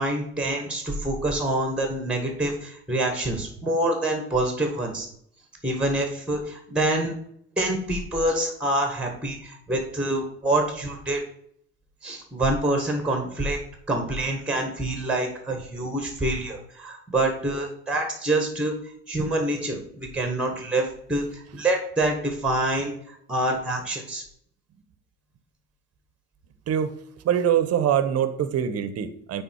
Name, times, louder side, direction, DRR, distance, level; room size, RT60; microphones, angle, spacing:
voice 1, 0.0-5.1 5.6-7.1 7.6-11.2 12.0-13.6 13.9-18.7 19.1-24.2, right 1 dB, 5° right, 4 dB, 1.8 m, -26 dB
voice 2, 27.2-29.4, right 9 dB, 45° right, 12 dB, 1.0 m, -23 dB
9.0 x 3.6 x 4.6 m, 0.67 s
hypercardioid pair, 70°, 34 cm